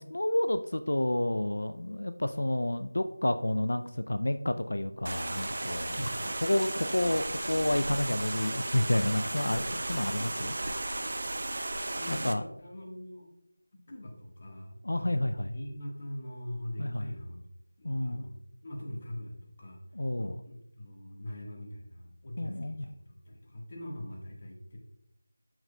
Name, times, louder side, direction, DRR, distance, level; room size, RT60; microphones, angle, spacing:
voice 1, 0.0-10.5 12.1-12.4 14.8-15.5 16.8-17.1 17.8-18.3 19.9-20.4 22.4-22.9, left 1 dB, 80° left, 9 dB, 0.4 m, -30 dB
sound 1, 5.0-12.3, right 2 dB, 45° right, 0.6 m, -35 dB
voice 2, 10.2-10.5 12.0-13.3 13.9-17.4 17.8-18.4 18.6-19.8 20.2-24.8, left 1 dB, 25° left, 0 dB, 1.4 m, -42 dB
12.5 x 4.8 x 2.2 m, 0.79 s
figure-of-eight pair, 175°, 0 cm